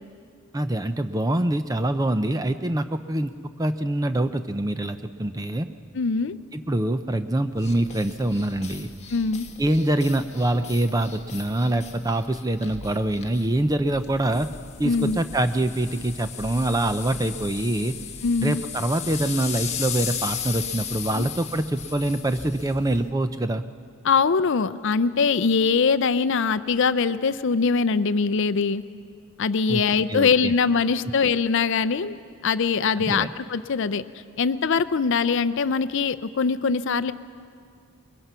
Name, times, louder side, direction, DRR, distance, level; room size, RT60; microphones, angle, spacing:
voice 1, 0.5-3.3 3.6-5.7 6.5-8.9 9.6-14.5 14.8-18.0 18.4-23.6 29.7-29.8 30.1-30.5 33.0-33.3, right 1 dB, 15° right, 10 dB, 0.5 m, -25 dB
voice 2, 5.9-6.4 9.1-9.5 14.8-15.2 18.2-18.6 21.1-21.3 24.0-28.8 29.4-32.2 32.4-34.0 34.4-37.1, left 5 dB, 55° left, 14 dB, 0.5 m, -22 dB
sound 1, 7.5-23.1, left 7 dB, 30° left, 1.2 m, -36 dB
22.5 x 21.5 x 5.6 m, 2.2 s
head